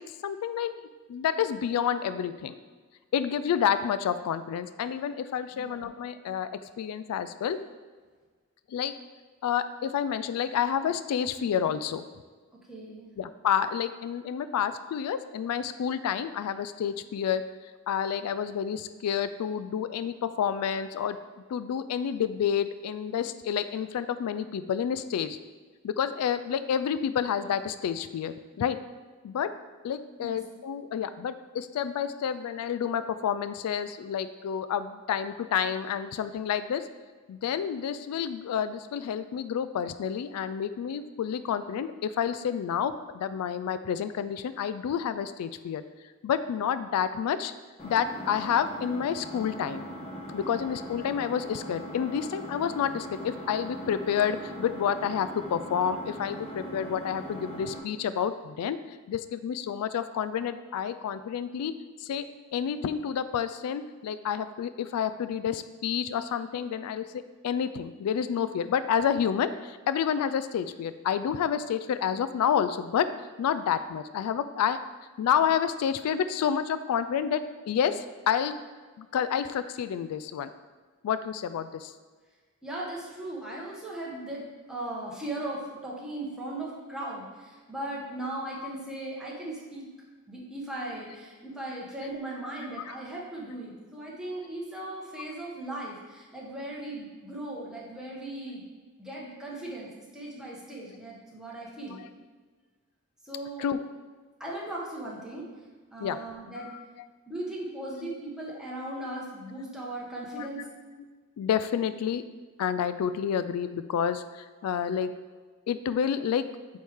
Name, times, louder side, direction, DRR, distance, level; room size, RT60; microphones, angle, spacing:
voice 1, 0.2-2.5 3.1-6.5 6.8-7.6 8.7-8.9 9.4-12.0 13.2-17.4 17.9-21.2 21.5-25.4 25.8-28.8 29.2-29.5 29.8-36.9 37.3-45.8 46.2-47.5 47.8-49.8 50.3-61.7 62.0-62.3 62.5-67.1 67.4-73.1 73.4-74.8 75.2-78.6 79.0-80.5 81.0-81.9 95.3-95.4 101.9-102.1 103.6-103.8 106.0-106.2 106.6-107.1 110.3-110.7 111.0-111.1 111.4-112.2 112.6-115.1 115.7-116.5, left 8 dB, 75° left, 15 dB, 0.3 m, -29 dB
voice 2, 12.7-13.1 30.2-30.4 50.5-50.7 82.6-89.9 90.3-98.6 99.0-102.0 103.2-103.6 104.4-105.5 105.9-106.7 107.3-110.7, right 1 dB, 5° right, -5 dB, 1.1 m, -38 dB
Engine, 47.8-57.8, equal, 25° left, 1.0 m, -40 dB
8.4 x 3.2 x 3.5 m, 1.4 s
head